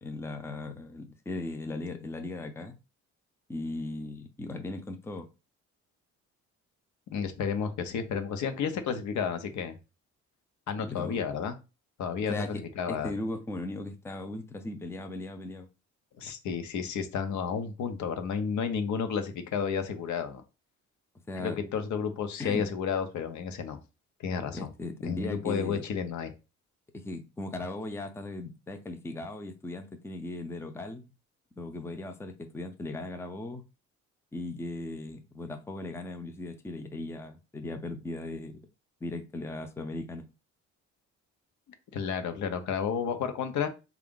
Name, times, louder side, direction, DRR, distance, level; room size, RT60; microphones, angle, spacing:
voice 1, 0.0-2.8 3.5-5.3 10.8-11.2 12.3-12.6 12.9-15.7 21.3-21.6 22.4-22.7 24.5-25.8 26.9-31.1 31.6-33.6 34.3-38.6 39.0-40.3, left 2 dB, 10° left, 0.5 m, -38 dB
voice 2, 7.1-9.8 10.7-11.6 12.0-13.1 16.2-20.4 21.4-23.8 24.2-24.7 25.0-26.3 41.9-43.7, left 6 dB, 70° left, 0.8 m, -31 dB
3.5 x 2.4 x 3.7 m
cardioid pair, 90°, 30 cm